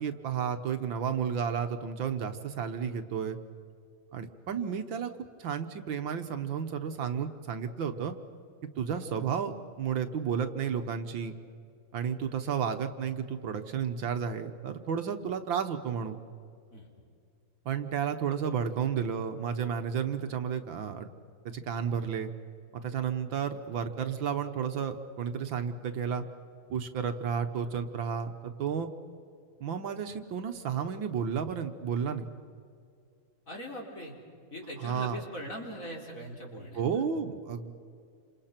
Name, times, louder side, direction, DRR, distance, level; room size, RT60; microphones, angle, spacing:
voice 1, 0.0-3.4 4.1-5.1 5.4-8.1 8.8-11.3 11.9-16.2 17.7-21.1 21.5-22.3 22.7-26.2 26.7-28.9 29.6-32.3 34.8-35.2 36.8-37.7, right 7 dB, 70° right, 7 dB, 1.8 m, -32 dB
voice 2, 33.5-34.1 34.5-36.8, equal, 40° left, -1 dB, 4.4 m, -41 dB
29.5 x 27.0 x 5.9 m, 2.3 s
omnidirectional pair, 2.3 m